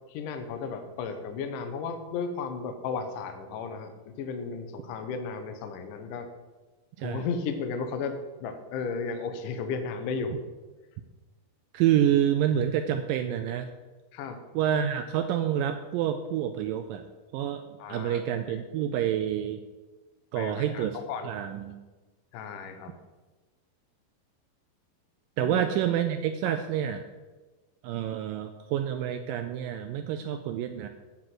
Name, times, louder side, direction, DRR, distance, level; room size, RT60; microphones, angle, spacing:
voice 1, 0.1-6.3 7.0-10.4 14.1-14.4 17.8-18.2 18.5-18.6 20.3-21.3 22.3-23.0 25.4-25.6 26.5-26.6, left 5 dB, 70° left, 7 dB, 2.2 m, -34 dB
voice 2, 11.7-13.7 14.5-17.0 17.3-17.6 17.9-19.6 20.3-21.0 21.2-21.8 25.4-27.0 27.8-30.9, right 10 dB, 85° right, 7 dB, 1.9 m, -28 dB
9.7 x 4.4 x 7.7 m, 1.2 s
omnidirectional pair, 4.4 m